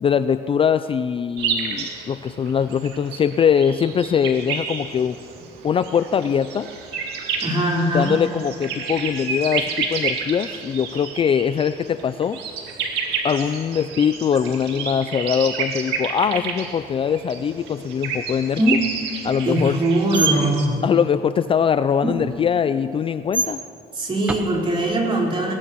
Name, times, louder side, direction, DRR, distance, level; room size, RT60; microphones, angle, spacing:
voice 1, 0.0-5.2 5.6-6.7 7.9-12.4 13.2-18.8 19.2-19.8 20.8-23.6, left 7 dB, 30° left, 12 dB, 0.4 m, -22 dB
sound 1, 1.4-20.7, right 5 dB, 80° right, 2.2 m, -30 dB
voice 2, 7.4-8.1 19.4-20.7 23.9-25.5, right 1 dB, 30° right, -4 dB, 4.6 m, -21 dB
sound 2, 18.6-19.0 20.1-20.4 22.0-22.5 23.3-23.5 24.3-24.4, right 1 dB, 10° right, 1.1 m, -21 dB
22.0 x 20.5 x 3.1 m, 2.4 s
cardioid pair, 110°, 17 cm